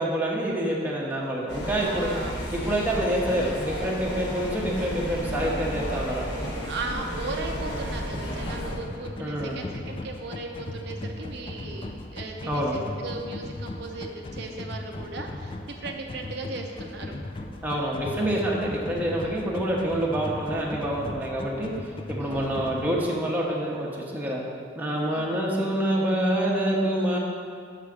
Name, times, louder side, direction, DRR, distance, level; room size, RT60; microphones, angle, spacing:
voice 1, 0.0-2.1 2.5-6.3 9.2-9.6 12.4-12.8 17.6-21.7 22.1-24.4 24.8-27.2, right 1 dB, 10° right, -3 dB, 0.9 m, -27 dB
sound 1, 1.5-8.8, equal, 60° left, 1.4 m, -32 dB
voice 2, 1.8-2.4 6.7-17.2 19.2-19.5 22.2-22.5 25.1-25.4, right 3 dB, 60° right, 2 dB, 0.5 m, -37 dB
sound 2, 8.1-22.9, left 2 dB, 25° left, 0.4 m, -38 dB
5.8 x 4.7 x 6.4 m, 2.2 s
head